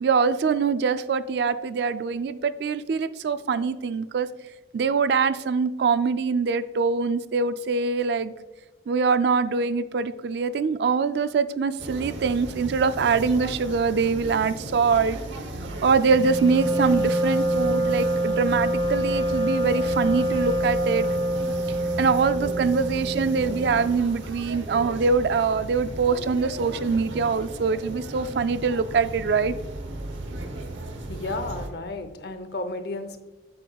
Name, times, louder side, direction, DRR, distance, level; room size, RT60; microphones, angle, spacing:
voice 1, 0.0-4.3 4.7-8.3 8.9-15.2 15.8-21.1 22.0-29.5, right 5 dB, 60° right, 13 dB, 0.3 m, -23 dB
sound 1, 11.8-31.7, right 1 dB, 85° right, 0.9 m, -36 dB
Wind instrument woodwind instrument, 16.1-23.9, right 1 dB, 25° right, 1.4 m, -25 dB
voice 2, 31.0-33.2, left 2 dB, 60° left, 9 dB, 0.6 m, -33 dB
8.5 x 6.6 x 2.3 m, 1.2 s
head